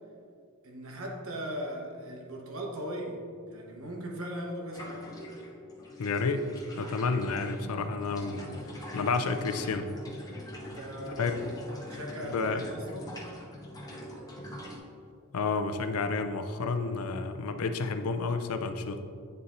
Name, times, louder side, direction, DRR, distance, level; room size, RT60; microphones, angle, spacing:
voice 1, 0.6-5.1 10.6-13.3, equal, 65° right, 0 dB, 1.0 m, -39 dB
sound 1, 4.7-14.8, left 1 dB, 15° left, 0.7 m, -43 dB
voice 2, 6.0-6.4 6.8-8.5 8.9-9.9 11.2-11.4 12.2-12.6 15.3-19.0, left 4 dB, 80° left, 7 dB, 0.5 m, -30 dB
8.2 x 7.0 x 2.6 m, 2.3 s
head